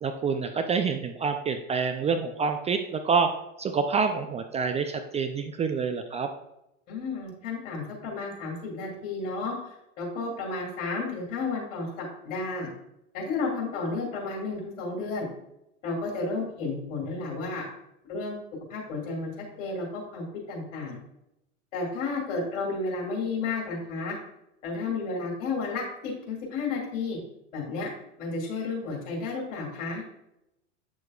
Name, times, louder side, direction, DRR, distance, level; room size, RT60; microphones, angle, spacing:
voice 1, 0.0-3.3 3.6-6.3, right 5 dB, 20° right, 7 dB, 0.4 m, -27 dB
voice 2, 6.9-9.6 10.0-12.7 13.1-15.3 15.8-17.6 18.1-18.4 18.7-19.3 19.6-21.0 21.7-24.2 24.6-27.2 27.5-27.9 28.2-30.0, left 3 dB, 65° left, -1 dB, 2.2 m, -32 dB
8.3 x 6.5 x 2.3 m, 0.85 s
hypercardioid pair, 90°, 38 cm